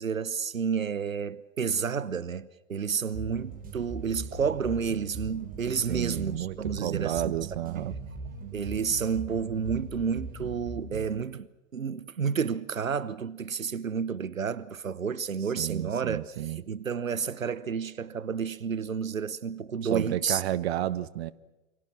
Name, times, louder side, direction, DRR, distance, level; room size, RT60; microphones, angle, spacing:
voice 1, 0.0-7.3 7.7-7.9 8.5-11.5 11.7-16.2 16.7-20.4, right 6 dB, 80° right, 1.0 m, -30 dB
sound 1, 3.1-11.2, right 3 dB, 20° right, 5.2 m, -40 dB
voice 2, 5.8-8.0 15.6-16.6 19.9-21.3, right 13 dB, 50° right, 1.0 m, -31 dB
28.5 x 25.0 x 6.0 m
figure-of-eight pair, 105°, 39 cm